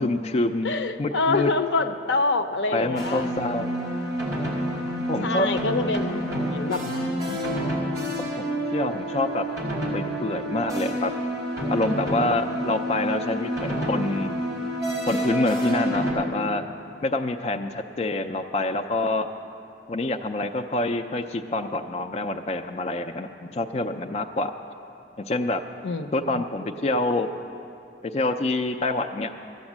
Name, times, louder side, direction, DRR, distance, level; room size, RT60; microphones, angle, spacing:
voice 1, 0.0-0.7 1.0-1.5 2.7-3.7 5.1-5.5 8.4-9.4 9.9-11.1 11.7-14.3 15.1-16.6 17.0-19.3 19.9-24.5 25.2-25.6 26.1-27.3 28.1-29.3, left 2 dB, 35° left, 5 dB, 0.4 m, -26 dB
voice 2, 0.6-3.2 5.2-7.4 25.8-26.1 26.3-26.4, left 3 dB, 85° left, 9 dB, 0.6 m, -26 dB
sound 1, 3.0-16.1, equal, 20° right, 2.5 m, -28 dB
13.5 x 8.8 x 7.3 m, 2.7 s
head